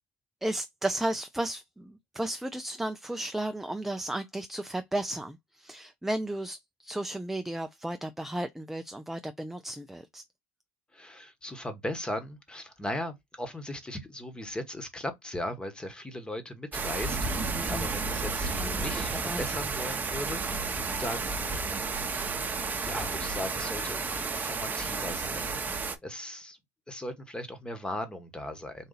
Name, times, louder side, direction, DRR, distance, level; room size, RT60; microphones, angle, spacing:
voice 1, 0.4-10.2 17.5-17.9 18.6-18.9 19.2-19.4, right 1 dB, 5° right, 0.5 m, -34 dB
voice 2, 10.9-21.5 22.8-25.5 25.8-26.6 26.9-28.9, left 1 dB, 10° left, 1.2 m, -38 dB
sound 1, 16.7-26.0, right 4 dB, 25° right, 0.9 m, -32 dB
4.1 x 2.6 x 3.9 m
hypercardioid pair, 85°, 7 cm